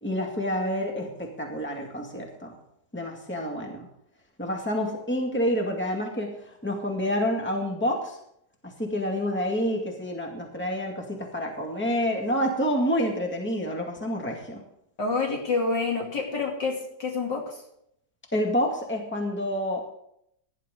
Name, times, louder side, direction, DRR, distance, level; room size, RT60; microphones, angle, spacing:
voice 1, 0.0-2.6 2.9-3.9 4.4-6.3 6.6-8.2 8.8-14.6 18.3-19.9, equal, 5° left, 1 dB, 2.0 m, -28 dB
voice 2, 15.0-17.6, left 4 dB, 75° left, 0 dB, 3.4 m, -28 dB
17.5 x 11.0 x 3.8 m, 0.74 s
omnidirectional pair, 1.9 m